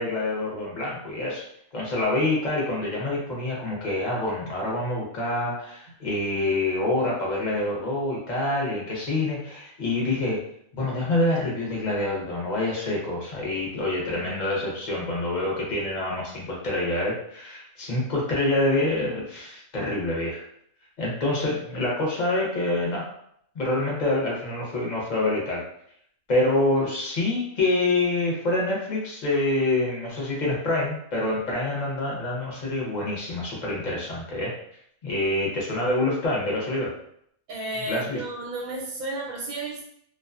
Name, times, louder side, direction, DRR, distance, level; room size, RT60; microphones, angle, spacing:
voice 1, 0.0-1.4 1.7-10.4 10.7-20.4 21.0-23.1 23.5-25.6 26.3-34.5 35.0-36.9 37.9-38.2, left 2 dB, 40° left, -4 dB, 0.7 m, -26 dB
voice 2, 37.5-39.9, right 2 dB, 90° right, -3 dB, 1.1 m, -32 dB
2.5 x 2.2 x 2.4 m, 0.68 s
omnidirectional pair, 1.5 m